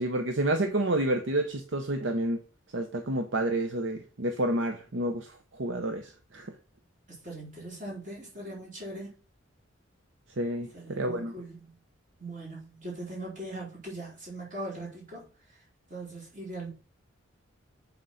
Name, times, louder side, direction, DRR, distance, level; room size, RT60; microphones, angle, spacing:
voice 1, 0.0-2.4 2.7-6.5 10.4-11.3, right 1 dB, 65° right, 0.8 m, -29 dB
voice 2, 7.1-9.2 10.7-11.7 12.2-15.3 15.9-16.7, right 1 dB, 40° right, 4.3 m, -40 dB
7.9 x 4.4 x 5.7 m
head